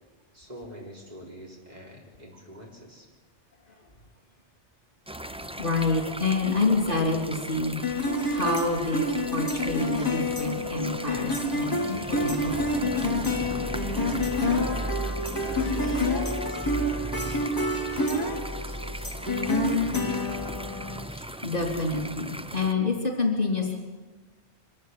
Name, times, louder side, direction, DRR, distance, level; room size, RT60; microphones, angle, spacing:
voice 1, 0.3-3.1 14.5-19.5, equal, 40° right, -2 dB, 4.4 m, -44 dB
sound 1, 5.1-22.7, right 1 dB, 5° right, 0.5 m, -36 dB
voice 2, 5.6-12.7 13.0-13.5 20.1-20.3 21.1-23.8, left 3 dB, 50° left, 1 dB, 3.8 m, -28 dB
sound 2, 7.8-21.0, left 2 dB, 20° left, 2.1 m, -28 dB
23.5 x 14.0 x 9.6 m, 1.3 s
omnidirectional pair, 1.2 m